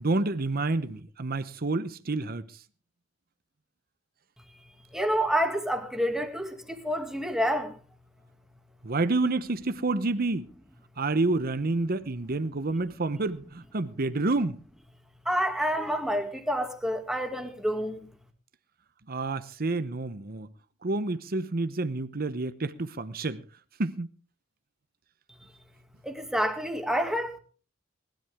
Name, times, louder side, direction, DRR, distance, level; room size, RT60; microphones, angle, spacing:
voice 1, 0.0-2.5 8.8-10.5 11.0-14.6 19.1-20.5 20.8-23.4 23.8-24.1, right 2 dB, 50° right, 0.9 m, -29 dB
voice 2, 4.9-6.5 6.8-7.7 15.3-18.1 26.0-27.4, equal, 5° right, 2.2 m, -28 dB
19.5 x 13.0 x 3.6 m
head